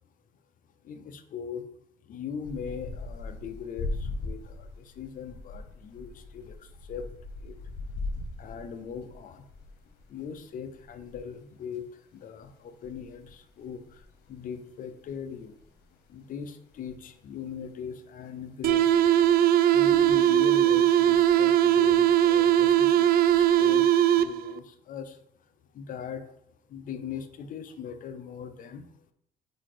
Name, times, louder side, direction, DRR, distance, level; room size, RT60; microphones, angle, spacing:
voice 1, 0.8-1.7 2.0-7.1 7.4-7.6 8.4-9.4 10.1-15.6 16.1-19.2 19.7-23.9 24.1-25.2 25.7-26.3 26.7-28.9, left 7 dB, 55° left, 9 dB, 0.7 m, -40 dB
sound 1, 2.4-17.7 18.3-19.1 19.5-20.9 21.1-21.9, left 2 dB, 80° left, 1.2 m, -40 dB
sound 2, 18.6-24.6, right 11 dB, 60° right, 0.4 m, -20 dB
4.9 x 4.0 x 4.9 m, 0.74 s
cardioid pair, 110°, 17 cm